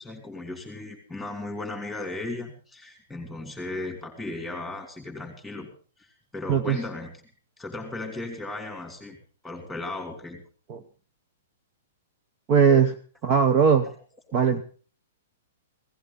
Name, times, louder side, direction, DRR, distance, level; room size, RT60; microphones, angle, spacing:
voice 1, 0.0-5.7 6.0-7.1 7.6-9.2 9.4-10.4 14.3-14.4, left 2 dB, ahead, 5 dB, 3.1 m, -36 dB
voice 2, 12.5-12.9 13.2-13.9 14.3-14.6, right 6 dB, 30° right, 8 dB, 0.9 m, -19 dB
17.0 x 15.0 x 4.1 m, 0.39 s
hypercardioid pair, 165°, 0 cm